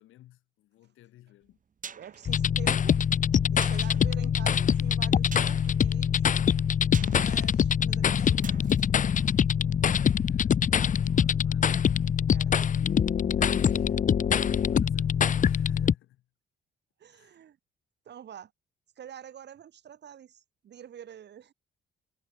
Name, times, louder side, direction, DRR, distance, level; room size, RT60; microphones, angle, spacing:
voice 1, 0.0-1.6 9.8-11.8 13.4-14.0 14.4-16.3 17.1-17.4, left 14 dB, 85° left, 7.3 m, -58 dB
sound 1, 1.4-10.3 10.6-10.7, right 6 dB, 40° right, 1.8 m, -48 dB
voice 2, 2.0-3.0 3.5-6.3 7.1-8.6 12.3-12.5 13.3-13.6 15.8-15.9 17.0-17.6 18.1-18.5 19.0-21.5, right 9 dB, 60° right, 2.5 m, -47 dB
sound 2, 2.3-15.9, left 8 dB, 40° left, 0.7 m, -24 dB
cardioid pair, 90°, 20 cm